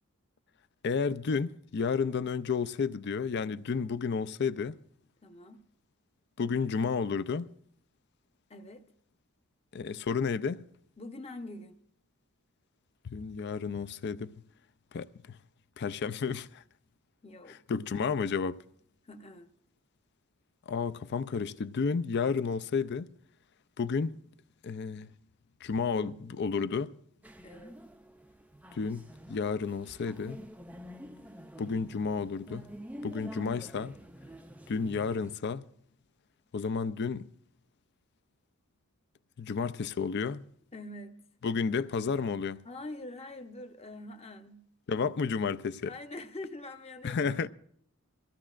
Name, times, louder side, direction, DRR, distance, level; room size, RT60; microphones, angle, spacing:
voice 1, 0.8-4.7 6.4-7.5 9.7-10.6 13.0-14.3 14.9-15.4 15.8-16.6 17.7-18.6 20.7-23.1 23.8-24.2 24.6-25.1 25.6-26.9 28.7-30.4 31.6-32.7 33.0-33.9 34.7-35.6 36.5-37.3 39.4-40.4 41.4-42.6 44.9-45.9 47.0-47.5, left 5 dB, 50° left, 0.4 m, -31 dB
voice 2, 5.2-5.6 8.5-8.8 11.0-11.8 17.2-17.6 19.0-19.5 25.9-26.3 27.4-27.7 40.7-41.2 42.6-44.6 45.9-47.5, left 2 dB, 30° left, 0.8 m, -44 dB
sound 1, 27.2-35.4, equal, 5° right, 0.4 m, -47 dB
23.0 x 15.0 x 2.5 m
head